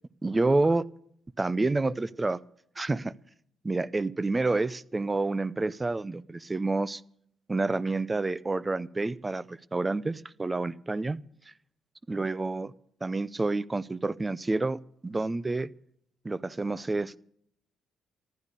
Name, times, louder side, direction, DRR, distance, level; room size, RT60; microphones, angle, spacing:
voice 1, 0.2-0.9 1.4-2.4 2.8-3.1 3.6-7.0 7.5-11.2 12.1-12.7 13.0-15.7 16.2-17.2, right 3 dB, 20° right, 20 dB, 0.5 m, -28 dB
15.0 x 11.5 x 6.6 m, 0.70 s
cardioid pair, 90°, 0 cm